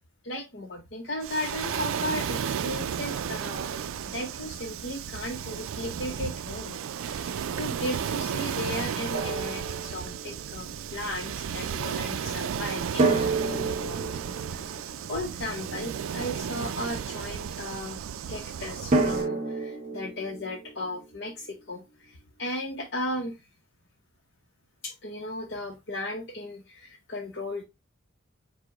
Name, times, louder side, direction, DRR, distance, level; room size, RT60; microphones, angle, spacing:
voice 1, 0.2-14.8 15.1-18.0 18.3-23.3 24.8-27.6, left 1 dB, 55° left, 0.7 m, -36 dB
Waves surf, 1.2-19.3, right 8 dB, 80° right, 0.3 m, -33 dB
Drum, 9.1-10.5 13.0-16.0 18.9-21.8, right 3 dB, 35° right, 0.8 m, -30 dB
4.8 x 2.1 x 4.8 m
head